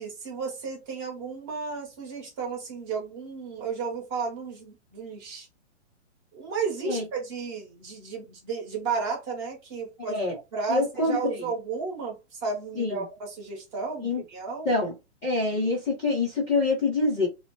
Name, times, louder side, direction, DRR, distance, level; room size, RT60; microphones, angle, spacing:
voice 1, 0.0-5.5 6.3-10.2 10.5-14.7, right 5 dB, 25° right, 1.0 m, -33 dB
voice 2, 10.0-10.3 10.7-11.5 12.7-13.0 14.0-14.2 14.6-14.9 15.2-17.3, left 3 dB, 10° left, 0.5 m, -26 dB
2.8 x 2.0 x 2.9 m
hypercardioid pair, 160°, 36 cm